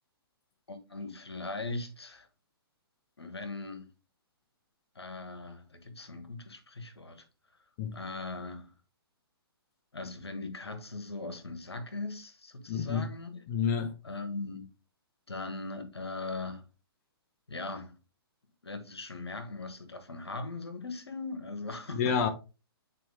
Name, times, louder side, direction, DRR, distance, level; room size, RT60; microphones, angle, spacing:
voice 1, 0.7-2.3 3.2-3.9 4.9-7.2 7.9-8.7 9.9-13.4 14.0-14.7 15.3-16.6 17.5-18.0 18.6-22.3, left 3 dB, 90° left, 1.5 m, -39 dB
voice 2, 12.7-13.1 13.5-13.9 21.9-22.3, left 6 dB, 35° left, 1.0 m, -28 dB
7.7 x 4.4 x 3.6 m
hypercardioid pair, 130°, 13 cm